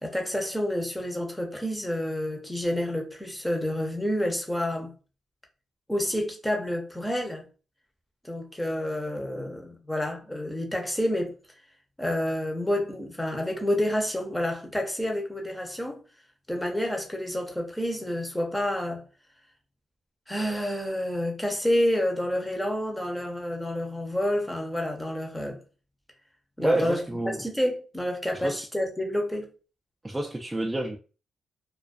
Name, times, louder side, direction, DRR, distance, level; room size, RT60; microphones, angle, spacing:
voice 1, 0.0-4.9 5.9-7.4 8.2-11.4 12.0-16.0 16.5-19.0 20.3-25.6 26.6-27.0 27.4-29.5, left 1 dB, 5° left, 0.7 m, -29 dB
voice 2, 26.6-27.4 28.4-28.6 30.0-31.0, right 2 dB, 15° right, 0.4 m, -28 dB
2.3 x 2.2 x 2.5 m
cardioid pair, 85°, 0 cm